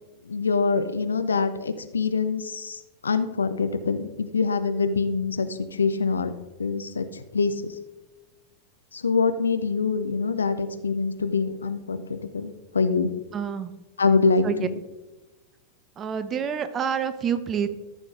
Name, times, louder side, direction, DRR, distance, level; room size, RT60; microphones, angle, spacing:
voice 1, 0.2-6.3 6.6-7.8 8.9-13.1 14.0-14.7, left 4 dB, 75° left, 11 dB, 0.6 m, -25 dB
voice 2, 13.3-13.7 14.4-14.5 16.0-17.7, right 7 dB, 25° right, 12 dB, 0.7 m, -27 dB
13.5 x 6.1 x 3.6 m, 1.1 s
figure-of-eight pair, 90°, 0 cm